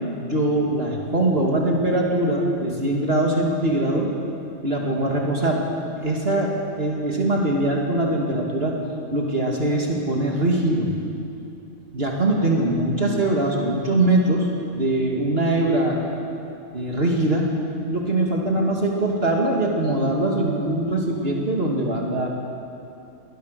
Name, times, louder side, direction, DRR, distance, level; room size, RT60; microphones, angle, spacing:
voice 1, 0.2-4.1 4.6-5.6 6.0-8.8 9.1-10.9 11.9-14.5 14.7-16.0 16.7-17.5 17.9-22.3, right 1 dB, 50° right, -1 dB, 2.6 m, -22 dB
21.5 x 19.5 x 6.7 m, 2.7 s
omnidirectional pair, 1.3 m